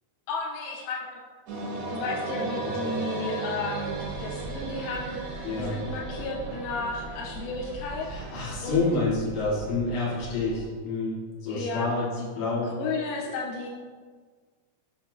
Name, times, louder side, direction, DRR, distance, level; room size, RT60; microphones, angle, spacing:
voice 1, 0.3-1.2 1.9-5.2 5.6-8.1 8.6-8.8 11.5-12.3 12.6-13.7, left 3 dB, 90° left, -3 dB, 3.3 m, -33 dB
sound 1, 1.5-8.8, right 3 dB, 65° right, 2.7 m, -36 dB
sound 2, 3.8-10.7, right 2 dB, 90° right, 3.4 m, -41 dB
voice 2, 5.4-5.7 8.0-12.1 12.4-12.7 13.2-13.3, left 3 dB, 60° left, -6 dB, 1.8 m, -28 dB
7.2 x 6.5 x 2.7 m, 1.5 s
omnidirectional pair, 5.7 m